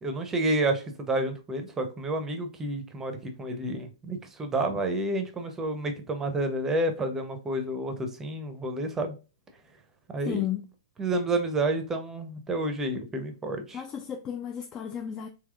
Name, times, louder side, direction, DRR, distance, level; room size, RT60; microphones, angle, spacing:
voice 1, 0.0-9.1 10.1-10.5 11.0-13.8, right 2 dB, 15° right, 0.6 m, -30 dB
voice 2, 10.2-10.6 13.7-15.3, left 10 dB, 25° left, 0.3 m, -33 dB
3.4 x 3.0 x 2.3 m
hypercardioid pair, 130°, 3 cm